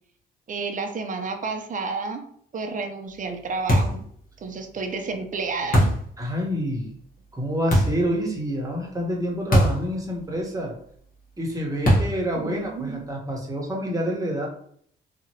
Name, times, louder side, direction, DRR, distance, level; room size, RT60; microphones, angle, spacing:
voice 1, 0.5-2.3 2.5-4.0 4.4-5.9 12.3-13.0, right 4 dB, 40° right, 5 dB, 0.6 m, -30 dB
sound 1, 3.7-4.1 5.7-6.1 7.7-8.1 9.5-9.9 10.2-10.3 11.9-12.2, equal, 45° left, 1.2 m, -20 dB
voice 2, 6.2-7.0 7.3-10.7 11.4-14.5, equal, 15° right, -1 dB, 1.1 m, -27 dB
2.9 x 2.5 x 2.8 m, 0.63 s
cardioid pair, 90°, 20 cm